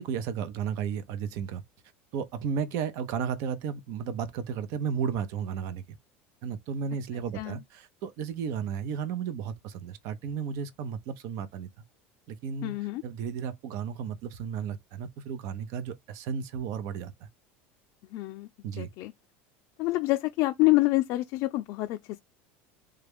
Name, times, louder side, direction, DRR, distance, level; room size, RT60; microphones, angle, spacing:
voice 1, 0.0-1.6 2.1-5.8 6.4-11.7 12.3-12.7 13.0-17.3 18.6-18.9, right 7 dB, 60° right, 0.7 m, -33 dB
voice 2, 12.6-13.0 18.1-18.5 18.8-19.1 19.8-22.2, left 20 dB, 55° left, 0.4 m, -27 dB
3.3 x 2.4 x 3.5 m
supercardioid pair, 125°, 6 cm